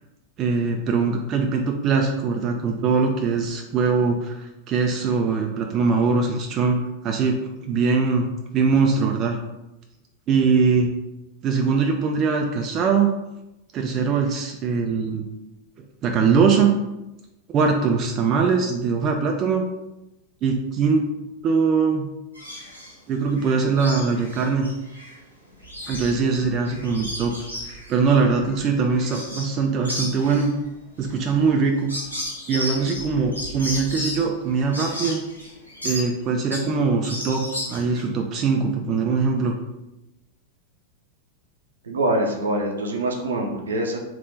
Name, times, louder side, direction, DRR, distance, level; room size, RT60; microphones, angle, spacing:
voice 1, 0.4-8.3 8.5-9.4 10.3-10.9 11.4-13.1 13.7-15.2 16.0-16.7 17.5-19.6 20.4-21.0 21.4-22.1 23.1-24.7 25.9-27.3 27.6-30.5 31.0-31.9 32.5-35.2 35.8-37.4 37.7-39.5, right 5 dB, 35° right, 2 dB, 0.4 m, -22 dB
sound 1, 22.3-22.9 23.4-25.2 25.5-29.6 29.8-36.8 37.0-38.0, left 1 dB, 90° right, 1.0 m, -34 dB
voice 2, 41.8-44.0, right 1 dB, 70° right, 2 dB, 0.6 m, -24 dB
3.5 x 2.5 x 3.9 m, 0.95 s
figure-of-eight pair, 90°, 0 cm